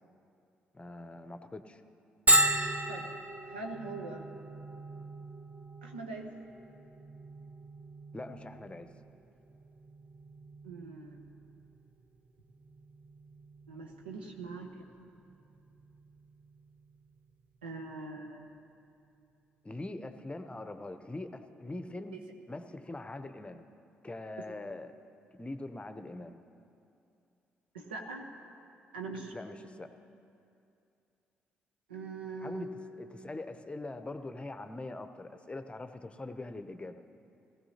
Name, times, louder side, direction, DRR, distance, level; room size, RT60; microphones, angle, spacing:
voice 1, 0.7-1.8 8.1-8.9 19.6-22.2 22.5-23.7 24.0-24.9 25.4-26.4 29.3-29.9 32.4-37.0, left 2 dB, 20° left, 9 dB, 0.8 m, -42 dB
Bell, 2.3-17.7, right 1 dB, 30° right, 0.8 m, -36 dB
voice 2, 3.4-4.2 5.8-6.3 10.6-11.2 13.7-14.7 15.0-15.1 17.6-18.6 22.1-22.2 27.7-28.3 28.9-29.3 31.9-32.7, right 3 dB, 85° right, 2 dB, 0.9 m, -42 dB
18.0 x 15.5 x 2.9 m, 2.6 s
figure-of-eight pair, 45°, 5 cm